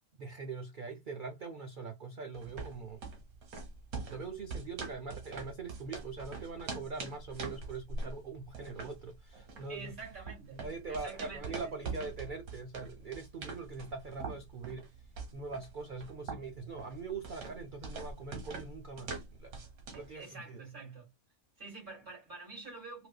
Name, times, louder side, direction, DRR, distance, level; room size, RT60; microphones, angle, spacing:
voice 1, 0.1-3.0 4.1-10.0 10.5-14.9 15.3-19.6 19.9-20.6, right 4 dB, 65° right, 0.5 m, -42 dB
sound 1, 2.3-20.1, right 4 dB, 80° right, 1.5 m, -44 dB
voice 2, 9.7-11.6 19.9-21.1 21.6-23.1, right 3 dB, 35° right, 2.8 m, -47 dB
4.1 x 2.5 x 2.2 m
omnidirectional pair, 1.5 m